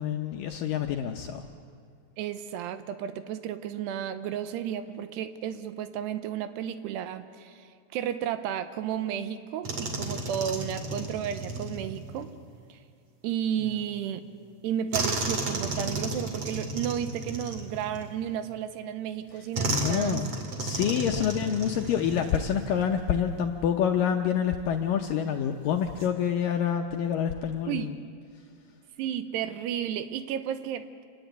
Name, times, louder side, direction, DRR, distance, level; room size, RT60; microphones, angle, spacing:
voice 1, 0.0-1.5 19.7-20.3 20.6-28.0, left 8 dB, 75° left, 3 dB, 2.0 m, -27 dB
voice 2, 2.2-7.6 7.9-12.3 12.7-12.8 13.2-14.2 14.6-20.4 20.7-20.8 27.7-27.9 29.0-30.9, right 9 dB, 80° right, 11 dB, 2.9 m, -33 dB
sound 1, 9.6-12.3 14.9-18.4 19.5-22.9 23.2-23.4 25.7-26.1, right 2 dB, 40° right, 2.7 m, -33 dB
27.5 x 19.5 x 8.1 m, 2.4 s
omnidirectional pair, 4.9 m